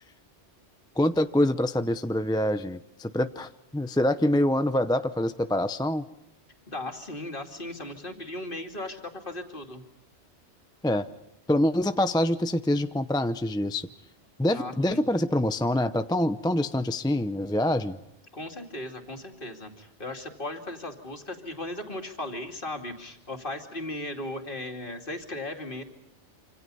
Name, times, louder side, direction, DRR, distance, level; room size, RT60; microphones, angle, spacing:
voice 1, 1.0-6.0 10.8-11.1 11.5-13.9 14.4-18.0, left 1 dB, 5° left, 10 dB, 0.6 m, -25 dB
voice 2, 6.7-9.8 14.5-15.0 18.3-25.8, left 1 dB, 50° left, 3 dB, 2.9 m, -37 dB
27.0 x 27.0 x 5.5 m, 0.82 s
omnidirectional pair, 1.2 m